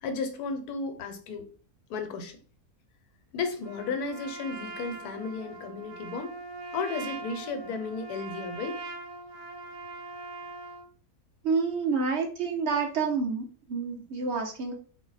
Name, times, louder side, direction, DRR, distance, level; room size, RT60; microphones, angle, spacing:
voice 1, 0.0-1.5 1.9-2.4 3.3-6.4 6.7-8.8, left 4 dB, 85° left, 7 dB, 1.2 m, -34 dB
Trumpet, 3.6-10.9, right 3 dB, 75° right, 1.2 m, -41 dB
voice 2, 11.4-14.7, right 5 dB, 55° right, 2 dB, 0.9 m, -28 dB
4.1 x 2.1 x 3.9 m, 0.41 s
omnidirectional pair, 1.6 m